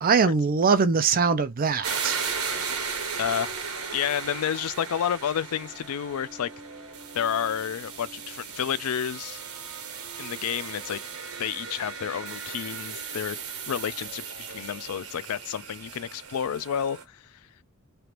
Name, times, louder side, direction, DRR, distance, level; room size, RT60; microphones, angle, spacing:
voice 1, 0.0-2.2, right 5 dB, 40° right, 0.5 m, -22 dB
sound 1, 1.8-17.0, right 5 dB, 85° right, 1.1 m, -36 dB
voice 2, 3.2-3.5 3.9-6.5 7.1-9.4 10.2-11.0 11.4-13.4 13.7-17.4, left 9 dB, 80° left, 0.4 m, -30 dB
3.3 x 2.5 x 2.9 m
head